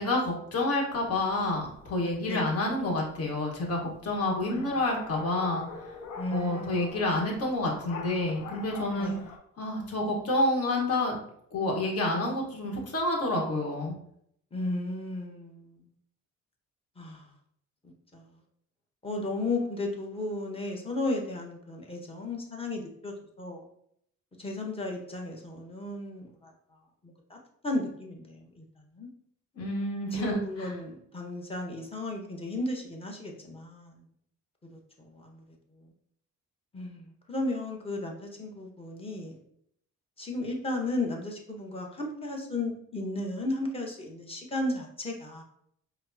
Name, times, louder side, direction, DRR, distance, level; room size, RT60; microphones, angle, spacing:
voice 1, 0.0-5.6 6.3-9.1 9.6-11.2 11.5-13.9 29.6-30.4, left 2 dB, 55° left, -1 dB, 1.3 m, -28 dB
sound 1, 0.9-9.4, left 4 dB, 75° left, 0.6 m, -45 dB
voice 2, 6.2-7.0 9.0-9.2 14.5-15.8 17.0-17.2 18.1-18.2 19.0-23.7 24.4-26.5 27.0-27.4 27.6-28.6 28.9-29.1 30.1-34.0 34.7-35.4 35.8-35.9 36.7-39.3 40.2-45.4, left 2 dB, 20° left, 0 dB, 0.9 m, -34 dB
4.9 x 2.1 x 2.7 m, 0.68 s
cardioid pair, 90°, 30 cm